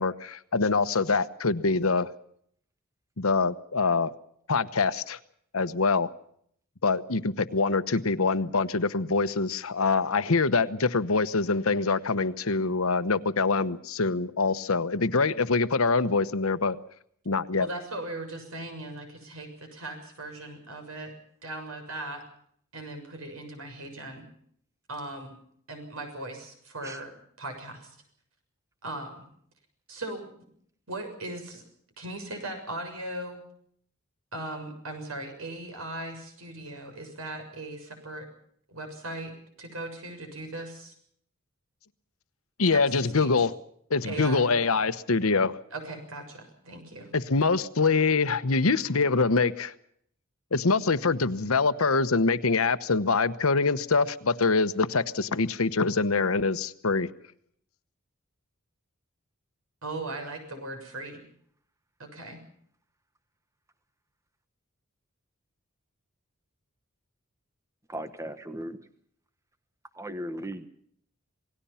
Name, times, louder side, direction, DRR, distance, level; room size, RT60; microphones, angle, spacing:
voice 1, 0.0-2.1 3.2-4.1 4.5-5.2 5.5-6.1 6.8-16.8 17.2-17.7 42.6-43.5 43.9-45.6 47.1-49.7 50.5-57.1, left 4 dB, 90° left, 12 dB, 1.1 m, -24 dB
voice 2, 17.6-21.1 21.4-22.2 22.7-24.3 24.9-25.4 25.7-27.1 27.4-28.0 28.8-29.3 29.9-30.3 30.9-31.6 32.0-33.4 34.3-38.3 38.7-39.3 39.6-40.9 42.7-43.5 44.0-44.5 45.7-47.1 59.8-61.2 62.0-62.4, right 2 dB, 85° right, 5 dB, 6.9 m, -38 dB
voice 3, 67.9-68.8 69.9-70.7, right 1 dB, 15° right, 10 dB, 1.2 m, -37 dB
27.5 x 18.5 x 5.8 m, 0.66 s
head